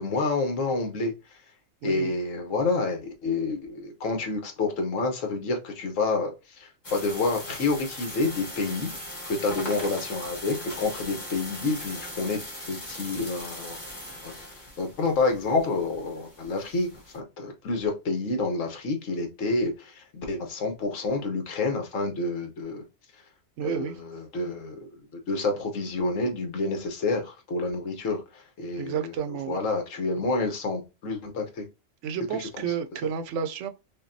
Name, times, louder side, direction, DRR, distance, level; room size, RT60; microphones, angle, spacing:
voice 1, 0.0-1.4 1.8-8.9 9.3-13.8 14.2-14.3 14.8-22.9 23.6-24.9 25.3-29.1 29.5-31.7 32.6-32.7, left 3 dB, 70° left, 1.3 m, -28 dB
voice 2, 1.8-2.1 23.6-23.9 28.8-29.6 32.0-33.7, right 7 dB, 70° right, 0.8 m, -31 dB
sound 1, 6.8-17.2, left 1 dB, 20° left, 1.4 m, -39 dB
5.6 x 2.3 x 2.6 m
omnidirectional pair, 1.4 m